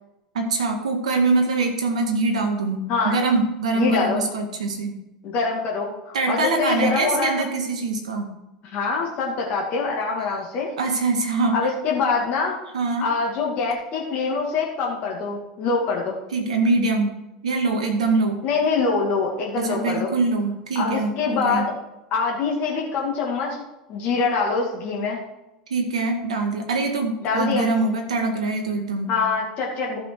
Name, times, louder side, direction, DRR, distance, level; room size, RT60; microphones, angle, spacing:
voice 1, 0.3-4.9 6.1-8.3 10.3-10.4 10.8-11.6 12.7-13.1 16.3-17.1 17.4-18.4 19.6-21.7 25.7-29.1, right 3 dB, 70° right, 4 dB, 2.0 m, -23 dB
voice 2, 3.7-4.2 5.2-7.5 8.7-10.7 11.5-12.6 13.0-16.2 18.4-20.1 20.8-21.7 22.1-23.6 23.9-25.2 27.2-27.7 29.1-30.0, left 4 dB, 40° left, -2 dB, 2.3 m, -24 dB
13.5 x 6.1 x 4.6 m, 0.92 s
figure-of-eight pair, 85°, 4 cm